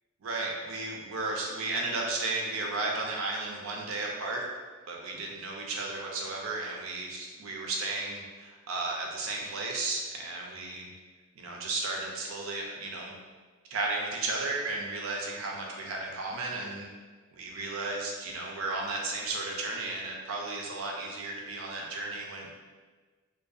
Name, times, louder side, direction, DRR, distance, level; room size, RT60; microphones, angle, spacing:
voice 1, 0.2-4.5 4.9-10.9 11.4-13.1 13.7-16.9 17.3-22.5, right 2 dB, 75° right, -1 dB, 0.5 m, -34 dB
2.6 x 2.3 x 2.3 m, 1.4 s
head